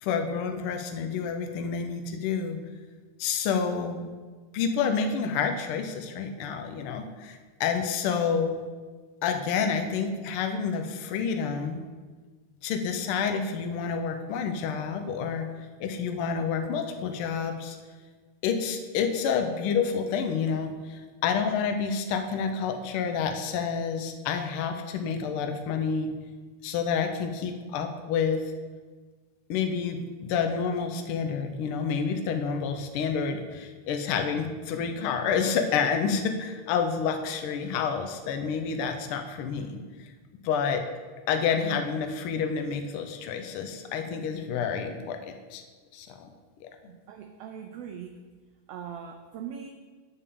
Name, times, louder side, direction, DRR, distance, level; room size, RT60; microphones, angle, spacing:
voice 1, 0.0-2.6 3.2-4.1 4.5-8.6 9.2-11.8 12.6-15.5 15.8-17.8 18.4-26.1 26.6-28.4 29.5-39.8 40.4-40.8 41.3-45.6 45.9-46.3 46.6-46.7, left 6 dB, 85° left, 6 dB, 1.2 m, -29 dB
voice 2, 46.9-48.2 48.7-49.7, right 8 dB, 90° right, 5 dB, 1.4 m, -40 dB
8.6 x 3.7 x 6.9 m, 1.4 s
omnidirectional pair, 3.3 m